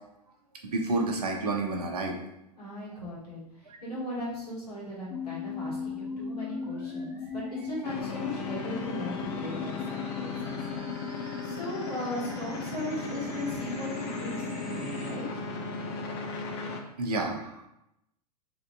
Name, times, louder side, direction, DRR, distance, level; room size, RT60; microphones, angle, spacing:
voice 1, 0.6-2.2 17.0-17.7, right 2 dB, 70° right, 2 dB, 0.6 m, -29 dB
voice 2, 2.5-15.3, left 1 dB, 70° left, -7 dB, 1.4 m, -38 dB
sound 1, 5.1-15.1, left 4 dB, ahead, 0.7 m, -38 dB
sound 2, 7.8-16.8, left 4 dB, 40° left, 0.4 m, -37 dB
2.9 x 2.6 x 2.2 m, 0.85 s
figure-of-eight pair, 100°, 21 cm